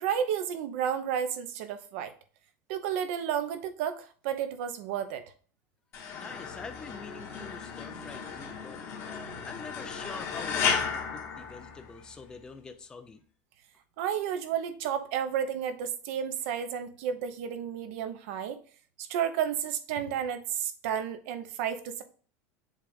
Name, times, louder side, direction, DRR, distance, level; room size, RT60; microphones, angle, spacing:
voice 1, 0.0-2.1 2.7-5.2 14.0-18.6 19.0-22.0, right 8 dB, 65° right, 10 dB, 0.8 m, -32 dB
sound 1, 5.9-12.2, left 6 dB, 35° left, 1.4 m, -34 dB
voice 2, 6.1-8.8 9.1-13.2, left 4 dB, 10° left, 7 dB, 0.4 m, -45 dB
7.4 x 2.5 x 5.1 m, 0.42 s
cardioid pair, 175°, 8 cm